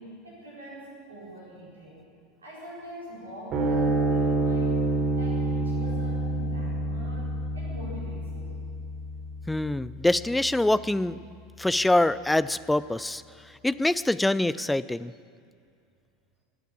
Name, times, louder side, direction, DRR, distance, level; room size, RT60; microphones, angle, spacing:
voice 1, 0.0-2.1 2.4-8.6, equal, 80° right, -6 dB, 4.6 m, -43 dB
sound 1, 3.5-10.2, right 2 dB, 40° right, 3.7 m, -28 dB
voice 2, 9.5-11.2 11.6-13.2 13.6-15.1, left 1 dB, 5° left, 17 dB, 0.4 m, -24 dB
15.5 x 9.3 x 8.6 m, 2.4 s
figure-of-eight pair, 80°, 0 cm